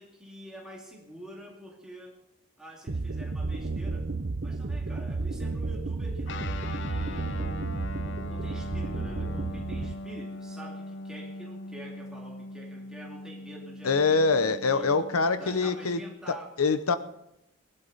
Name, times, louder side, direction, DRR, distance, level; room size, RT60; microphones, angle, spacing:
voice 1, 0.0-2.2 2.6-4.1 4.4-7.7 8.3-15.0 15.4-16.5, equal, 5° right, -2 dB, 2.4 m, -46 dB
sound 1, 2.9-9.9, right 3 dB, 50° right, 0.7 m, -32 dB
Guitar, 6.3-16.2, left 2 dB, 55° left, 0.6 m, -41 dB
voice 2, 13.8-16.0 16.3-17.0, left 4 dB, 90° left, 12 dB, 0.8 m, -24 dB
20.5 x 11.0 x 4.0 m, 0.83 s
head